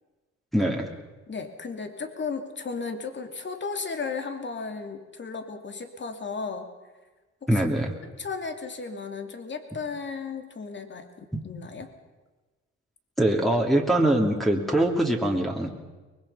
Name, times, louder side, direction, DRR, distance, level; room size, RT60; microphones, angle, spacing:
voice 1, 0.5-0.9 7.5-7.9 11.3-11.4 13.2-15.7, right 1 dB, ahead, -1 dB, 2.9 m, -23 dB
voice 2, 1.3-6.7 7.4-7.5 8.0-11.9, left 4 dB, 40° left, 7 dB, 2.8 m, -35 dB
23.5 x 21.5 x 5.7 m, 1.2 s
cardioid pair, 90°, 30 cm